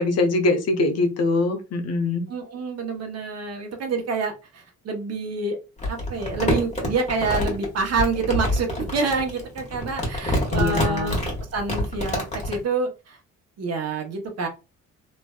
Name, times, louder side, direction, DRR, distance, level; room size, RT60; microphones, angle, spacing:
voice 1, 0.0-2.2 10.5-11.2, left 3 dB, 55° left, 6 dB, 0.8 m, -23 dB
voice 2, 2.3-5.6 5.9-11.2 11.5-13.2 13.6-14.5, right 4 dB, 55° right, 3 dB, 1.0 m, -27 dB
Crumpling crinkling, 5.8-12.6, left 1 dB, 20° left, 1.5 m, -26 dB
3.2 x 2.5 x 2.3 m, 0.29 s
cardioid pair, 90°, 30 cm